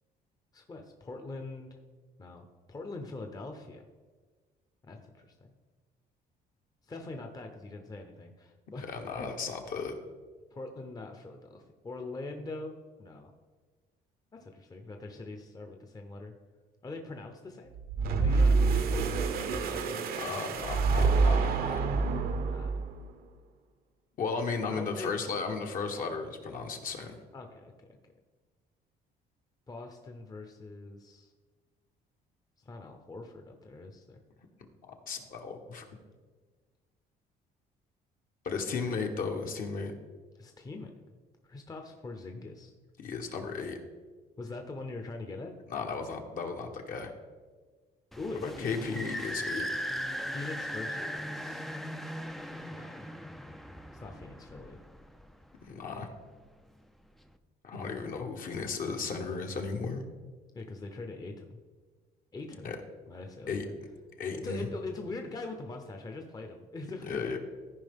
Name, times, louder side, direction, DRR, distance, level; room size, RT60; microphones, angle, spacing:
voice 1, 0.5-1.7 2.2-3.9 4.8-5.5 6.9-9.5 10.5-12.7 13.0-13.3 14.3-16.3 16.8-17.7 18.2-20.8 22.2-22.7 24.7-25.1 27.3-27.7 29.7-31.3 32.6-34.2 40.4-40.9 41.4-42.7 44.4-45.5 48.2-48.7 50.3-51.6 52.7-53.1 53.9-54.8 60.5-61.6 62.3-62.7 63.1-63.7 64.3-67.3, left 3 dB, 20° left, 4 dB, 0.8 m, -43 dB
voice 2, 8.8-9.9 20.2-21.8 24.2-27.2 34.9-35.9 38.4-39.9 43.0-43.8 45.7-47.1 48.4-49.7 55.7-56.1 57.6-60.0 62.6-62.8 63.5-63.6 64.2-64.7 67.0-67.4, left 5 dB, 55° left, 3 dB, 1.2 m, -35 dB
sound 1, 17.7-23.0, right 4 dB, 60° right, 0.8 m, -27 dB
sound 2, 48.1-55.4, equal, ahead, 0.4 m, -38 dB
14.5 x 4.9 x 3.6 m, 1.4 s
cardioid pair, 110°, 17 cm